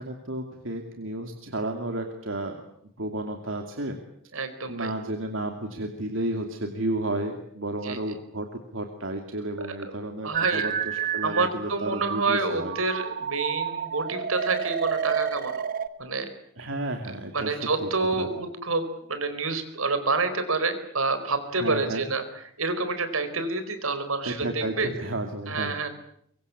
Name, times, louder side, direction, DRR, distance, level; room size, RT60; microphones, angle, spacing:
voice 1, 0.0-2.6 3.0-4.0 4.7-12.8 16.6-17.9 18.2-18.3 21.5-22.0 24.2-25.7, right 1 dB, 70° right, 4 dB, 2.7 m, -32 dB
voice 2, 4.3-4.9 7.8-8.0 9.9-10.0 10.2-10.7 11.2-15.6 16.0-16.3 17.3-22.2 22.6-24.9 25.5-25.9, right 3 dB, 85° right, 10 dB, 4.6 m, -28 dB
sound 1, 10.3-15.9, right 8 dB, 40° right, 1.3 m, -30 dB
24.0 x 24.0 x 8.5 m, 0.69 s
head